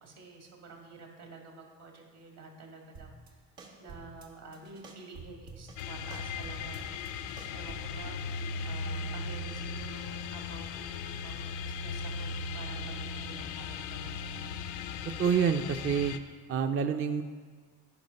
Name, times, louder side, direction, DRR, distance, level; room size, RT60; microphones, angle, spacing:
voice 1, 0.0-3.4 3.8-14.3, right 3 dB, 65° right, 1 dB, 2.1 m, -50 dB
sound 1, 2.9-3.3 3.6-4.3 4.5-5.8 6.1-8.0, right 4 dB, 90° right, 1.2 m, -48 dB
sound 2, 5.8-16.2, left 4 dB, 80° left, 0.6 m, -37 dB
voice 2, 15.2-16.2 16.5-17.2, right 7 dB, 30° right, 6 dB, 0.5 m, -27 dB
9.3 x 5.1 x 5.3 m, 1.5 s
hypercardioid pair, 50°, 43 cm